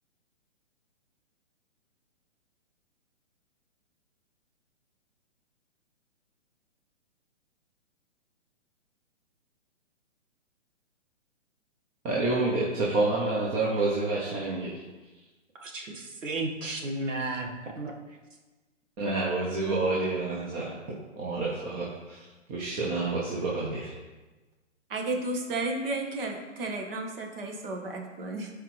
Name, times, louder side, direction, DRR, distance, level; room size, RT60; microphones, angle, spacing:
voice 1, 12.0-14.8 19.0-20.7 21.2-22.2 22.5-23.9, right 3 dB, 20° right, -5 dB, 1.0 m, -28 dB
voice 2, 15.6-17.5 17.8-17.9, right 2 dB, 80° right, 1 dB, 1.7 m, -33 dB
voice 3, 24.9-28.5, right 2 dB, 50° right, 2 dB, 1.6 m, -33 dB
12.0 x 4.8 x 3.2 m, 1.2 s
hypercardioid pair, 145°, 37 cm